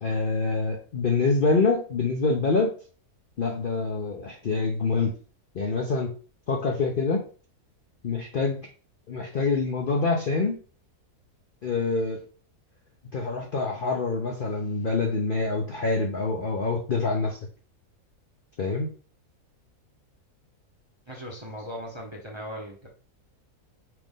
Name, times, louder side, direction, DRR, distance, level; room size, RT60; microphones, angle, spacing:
voice 1, 0.0-2.7 3.4-5.1 5.5-6.1 6.5-7.2 8.0-8.7 9.1-10.6 11.6-12.2 13.1-17.4 18.6-18.9, left 3 dB, 55° left, 1 dB, 0.6 m, -26 dB
voice 2, 21.1-22.9, equal, 25° right, 0 dB, 0.8 m, -38 dB
5.8 x 2.5 x 3.6 m, 0.40 s
omnidirectional pair, 1.6 m